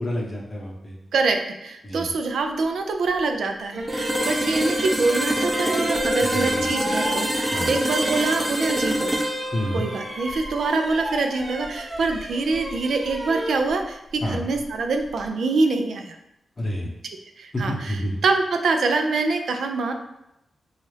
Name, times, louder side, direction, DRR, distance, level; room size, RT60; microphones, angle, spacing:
voice 1, 0.0-1.0 1.8-2.1 6.2-6.7 7.5-7.7 9.5-9.8 14.2-14.5 16.6-16.9 17.5-18.2, equal, 35° left, -2 dB, 0.8 m, -28 dB
voice 2, 1.1-9.2 9.7-16.2 17.4-18.0 18.2-19.9, right 3 dB, 85° right, 5 dB, 0.4 m, -25 dB
sound 1, 3.1-3.2 3.7-8.9 9.1-15.3, right 1 dB, 50° right, 1.1 m, -35 dB
sound 2, 3.9-11.7, equal, 5° right, 0.5 m, -26 dB
4.0 x 2.4 x 3.2 m, 0.85 s
wide cardioid pair, 105°, 0 cm